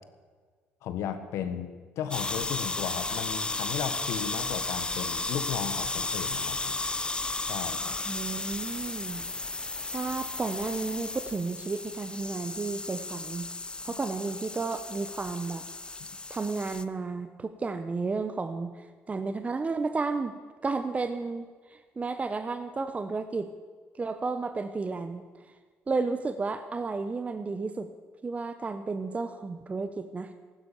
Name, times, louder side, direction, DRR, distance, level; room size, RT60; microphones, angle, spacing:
voice 1, 0.8-6.8 7.4-8.0 13.9-14.0 16.0-16.1, left 8 dB, 75° left, 10 dB, 1.5 m, -35 dB
sound 1, 2.1-16.8, left 3 dB, 20° left, 0.8 m, -34 dB
voice 2, 8.1-9.2 9.9-13.5 13.8-15.6 16.3-20.3 20.6-23.5 24.0-25.2 25.9-27.9 28.2-30.3, right 4 dB, 30° right, 10 dB, 1.0 m, -32 dB
15.0 x 12.0 x 7.1 m, 1.5 s
supercardioid pair, 80°, 5 cm